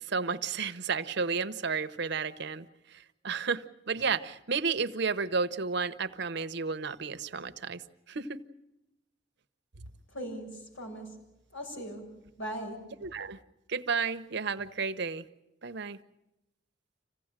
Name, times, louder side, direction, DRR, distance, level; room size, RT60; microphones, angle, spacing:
voice 1, 0.1-2.7 3.2-7.8 8.1-8.4 13.0-13.4 13.7-15.2 15.6-16.0, right 5 dB, 60° right, 11 dB, 0.9 m, -32 dB
voice 2, 10.1-11.2 11.5-12.0 12.4-12.8, right 1 dB, 80° left, 1 dB, 7.2 m, -39 dB
26.5 x 16.5 x 8.9 m, 0.91 s
head